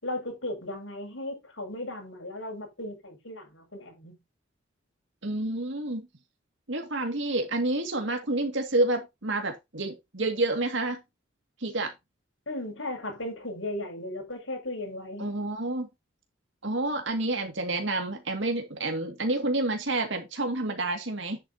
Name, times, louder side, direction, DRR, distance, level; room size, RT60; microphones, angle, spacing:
voice 1, 0.0-4.2 12.5-15.3, left 1 dB, 85° left, 6.2 m, -36 dB
voice 2, 5.2-6.1 6.7-11.0 11.6-11.9 15.2-15.9 16.6-21.4, right 2 dB, 70° right, 2.2 m, -29 dB
10.0 x 8.3 x 2.9 m
head